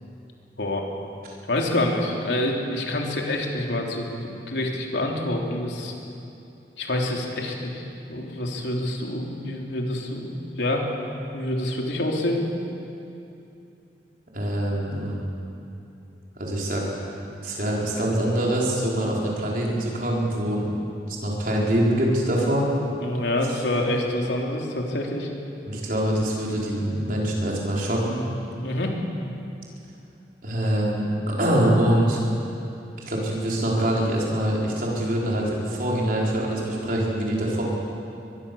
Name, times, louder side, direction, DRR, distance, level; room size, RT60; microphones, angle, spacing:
voice 1, 1.5-5.9 6.8-10.9 11.3-12.4 23.0-25.3 28.6-29.0, left 1 dB, 80° left, 0 dB, 3.3 m, -27 dB
voice 2, 14.3-15.1 16.4-16.8 17.4-20.7 21.1-22.7 25.7-28.2 30.4-32.2 33.1-37.6, right 1 dB, 55° right, -3 dB, 5.0 m, -24 dB
22.5 x 22.5 x 7.1 m, 2.7 s
head